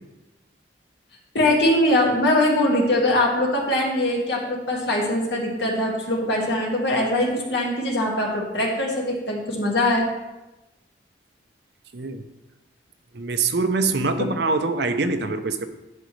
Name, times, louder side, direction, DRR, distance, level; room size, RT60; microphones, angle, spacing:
voice 1, 1.3-10.1, left 1 dB, 70° left, -2 dB, 2.0 m, -22 dB
voice 2, 13.1-15.7, right 3 dB, 65° right, 8 dB, 0.7 m, -24 dB
10.5 x 7.0 x 3.2 m, 1.0 s
head